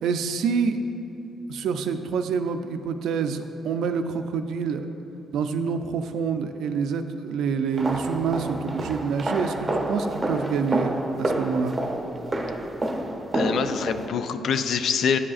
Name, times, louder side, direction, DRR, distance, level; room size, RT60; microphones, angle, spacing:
voice 1, 0.0-0.8 1.5-4.9 5.3-11.8, right 5 dB, 80° right, 8 dB, 0.4 m, -27 dB
sound 1, 7.7-14.1, right 1 dB, 25° right, 0.6 m, -29 dB
voice 2, 13.3-15.2, left 6 dB, 65° left, 10 dB, 0.3 m, -25 dB
9.7 x 4.9 x 2.4 m, 3.0 s
cardioid pair, 90°, 0 cm